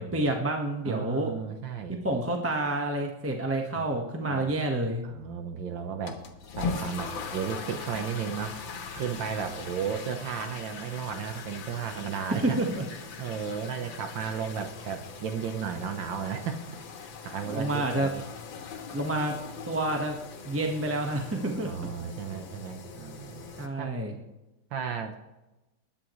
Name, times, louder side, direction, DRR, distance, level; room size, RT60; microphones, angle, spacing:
voice 1, 0.0-1.3 2.0-5.0 12.4-12.8 17.4-18.1 18.9-19.3 19.6-20.2 20.4-21.7 23.6-24.1, right 1 dB, 10° right, 2 dB, 1.0 m, -28 dB
voice 2, 0.9-2.0 3.8-3.9 4.3-4.5 5.0-6.2 6.6-8.6 8.9-12.6 13.2-18.3 21.6-23.5 23.8-23.9 24.7-25.2, right 7 dB, 75° right, 6 dB, 1.6 m, -34 dB
sound 1, 6.0-23.7, left 5 dB, 80° left, 2.0 m, -40 dB
20.5 x 9.9 x 3.1 m, 1.0 s
omnidirectional pair, 2.1 m